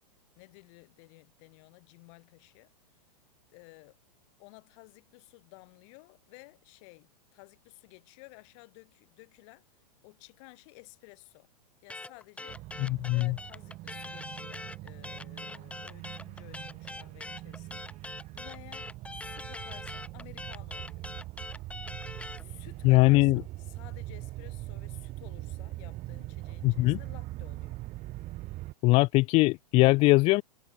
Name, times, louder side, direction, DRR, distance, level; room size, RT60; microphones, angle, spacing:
voice 1, 0.4-2.7 3.5-4.0 4.4-9.6 10.0-11.5 11.8-12.6 13.1-17.9 18.3-21.1 22.3-27.8, left 32 dB, 45° left, 6.8 m, -54 dB
sound 1, 11.9-22.4, left 2 dB, 5° left, 1.7 m, -43 dB
sound 2, 12.5-28.7, right 18 dB, 35° right, 7.9 m, -42 dB
voice 2, 12.8-13.3 22.8-23.4 26.6-27.0 28.8-30.4, left 22 dB, 30° left, 0.5 m, -21 dB
hypercardioid pair, 115°, 21 cm